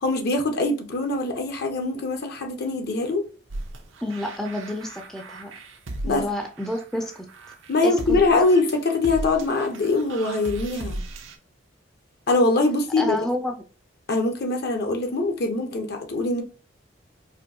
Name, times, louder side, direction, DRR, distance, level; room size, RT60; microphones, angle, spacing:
voice 1, 0.0-3.2 6.0-6.3 7.7-11.0 12.3-13.2 14.1-16.4, left 2 dB, 55° left, 0.7 m, -23 dB
sound 1, 3.5-11.4, right 1 dB, 85° right, 0.7 m, -36 dB
voice 2, 4.0-5.5 6.1-7.3 7.8-8.2 13.0-13.6, left 1 dB, 5° left, 0.4 m, -29 dB
4.3 x 2.7 x 2.7 m
head